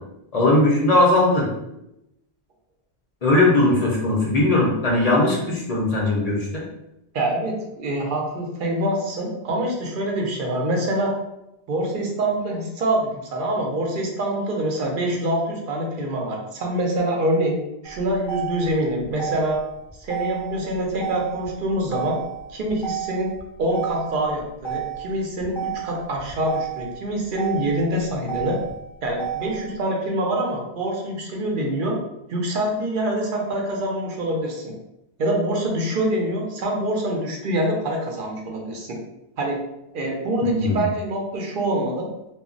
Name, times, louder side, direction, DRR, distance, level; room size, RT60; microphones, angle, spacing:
voice 1, 0.3-1.5 3.2-6.6 40.4-40.8, left 2 dB, 45° left, -3 dB, 0.6 m, -19 dB
voice 2, 7.1-11.1 11.7-17.6 17.8-19.6 20.0-22.2 22.5-23.3 23.6-28.6 29.0-32.0 32.3-34.7 35.2-39.0 39.4-39.6 39.9-42.1, right 1 dB, 55° right, 0 dB, 0.7 m, -25 dB
Motor vehicle (road), 17.8-29.8, right 10 dB, 5° right, 0.4 m, -32 dB
2.2 x 2.0 x 3.7 m, 0.88 s
omnidirectional pair, 1.1 m